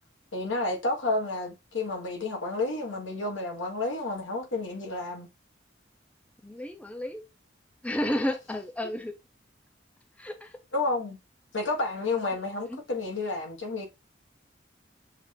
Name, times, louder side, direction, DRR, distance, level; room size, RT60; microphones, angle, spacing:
voice 1, 0.3-5.3 10.7-11.2 11.5-13.9, left 2 dB, 90° left, 1.4 m, -30 dB
voice 2, 6.4-7.2 7.8-9.1 10.2-10.6 12.3-12.8, left 1 dB, 5° left, 0.5 m, -32 dB
6.4 x 2.4 x 3.2 m
head